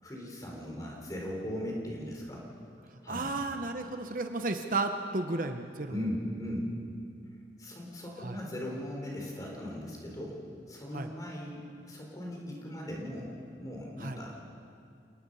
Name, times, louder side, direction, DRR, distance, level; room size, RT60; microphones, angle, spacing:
voice 1, 0.0-2.4 3.0-3.4 5.9-6.8 7.6-10.4 10.7-11.6 11.9-13.3 13.6-14.3, equal, 20° left, -2 dB, 4.4 m, -38 dB
voice 2, 3.1-5.9 8.2-8.3 10.9-11.1 14.0-14.2, right 3 dB, 45° right, 6 dB, 0.9 m, -33 dB
28.5 x 18.5 x 5.6 m, 2.4 s
head